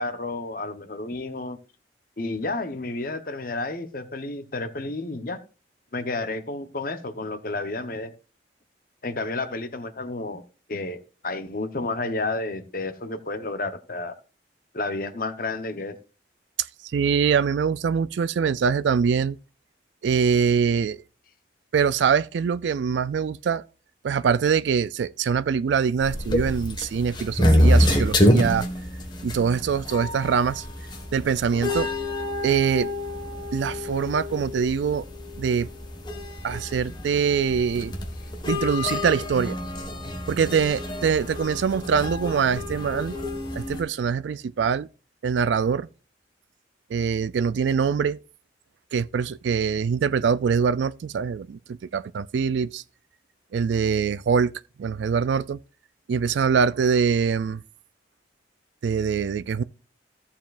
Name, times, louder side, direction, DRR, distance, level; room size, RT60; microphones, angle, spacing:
voice 1, 0.0-1.6 2.2-5.4 5.9-8.1 9.0-10.4 10.7-14.1 14.7-16.0, left 2 dB, 50° left, 1.0 m, -31 dB
voice 2, 16.6-19.4 20.0-21.0 21.7-23.6 24.0-28.7 29.2-30.6 31.1-31.9 32.4-32.9 33.5-35.0 35.4-35.7 36.4-37.9 38.5-39.6 40.3-43.2 43.5-44.9 45.2-45.9 46.9-48.2 48.9-52.8 53.5-54.5 54.8-55.6 56.1-57.6 58.8-59.6, right 6 dB, 80° right, 0.3 m, -23 dB
sound 1, 26.0-43.8, left 1 dB, 25° left, 1.5 m, -27 dB
14.0 x 7.2 x 2.5 m
head